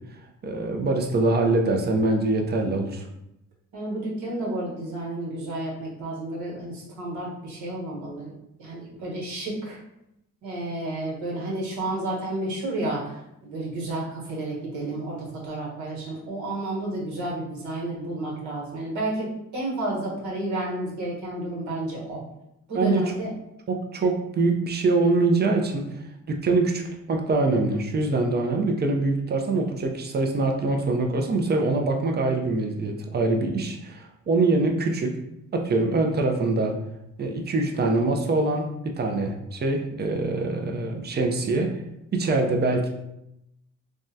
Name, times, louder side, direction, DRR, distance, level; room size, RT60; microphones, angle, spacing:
voice 1, 0.4-3.1 22.7-23.1 23.7-26.0 26.3-26.8 27.1-35.1 35.5-36.8 37.2-41.7 42.1-42.9, right 2 dB, 35° right, 2 dB, 0.5 m, -24 dB
voice 2, 3.7-8.3 8.6-9.8 10.4-22.2 22.7-23.3, right 2 dB, 70° right, -4 dB, 1.2 m, -31 dB
3.5 x 2.1 x 2.7 m, 0.84 s
cardioid pair, 90°, 30 cm